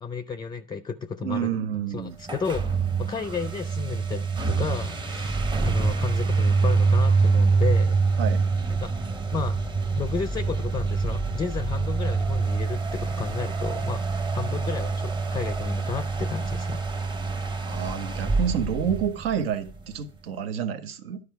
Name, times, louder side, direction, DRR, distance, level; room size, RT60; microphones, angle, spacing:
voice 1, 0.0-1.5 1.9-2.7 3.0-8.0 8.7-8.9 9.3-9.6 10.0-16.8, left 6 dB, 15° left, 0.4 m, -33 dB
voice 2, 1.2-2.1 8.2-8.4 17.7-21.2, right 8 dB, 85° right, 1.0 m, -29 dB
sound 1, 2.2-19.7, right 4 dB, 15° right, 0.8 m, -25 dB
11.0 x 4.8 x 4.6 m
supercardioid pair, 105°, 29 cm